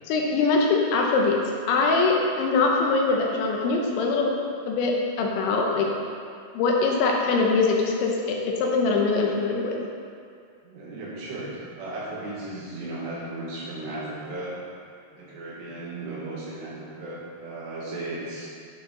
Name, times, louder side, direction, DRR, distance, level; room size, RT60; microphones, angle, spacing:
voice 1, 0.1-1.4 1.7-4.3 4.7-5.9 6.5-9.8, left 3 dB, 80° left, 0 dB, 3.1 m, -23 dB
voice 2, 10.6-14.6 15.1-18.5, right 2 dB, 70° right, -6 dB, 3.6 m, -35 dB
11.5 x 6.8 x 3.8 m, 2.3 s
omnidirectional pair, 5.5 m